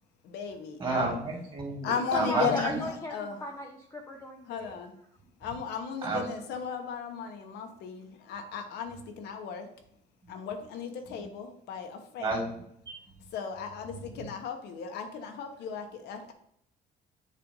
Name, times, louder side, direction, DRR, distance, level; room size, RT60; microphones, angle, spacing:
voice 1, 0.2-1.2 1.8-3.4 4.5-4.9 5.4-9.7 10.3-12.4 13.3-16.3, left 7 dB, 80° left, 5 dB, 0.9 m, -36 dB
voice 2, 0.8-2.8 6.0-6.2 12.2-12.5 12.9-13.2 13.9-14.3, right 3 dB, 30° right, -2 dB, 2.3 m, -32 dB
voice 3, 2.1-3.1 3.4-4.7, left 1 dB, 15° left, 1 dB, 0.6 m, -35 dB
7.4 x 2.6 x 5.3 m, 0.71 s
cardioid pair, 110°, 17 cm